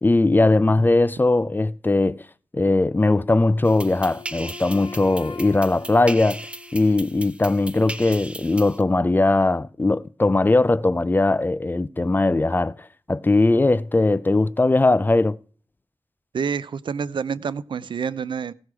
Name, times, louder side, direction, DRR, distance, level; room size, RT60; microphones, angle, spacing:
voice 1, 0.0-2.3 2.5-6.4 6.7-15.4, left 2 dB, 25° left, 0.4 m, -20 dB
Wind instrument woodwind instrument, 3.5-7.4, left 5 dB, 70° left, 1.1 m, -43 dB
sound 1, 3.6-8.8, right 1 dB, 15° right, 0.7 m, -37 dB
voice 2, 16.3-18.5, right 6 dB, 80° right, 0.5 m, -28 dB
17.0 x 6.3 x 4.7 m
wide cardioid pair, 70°, 8 cm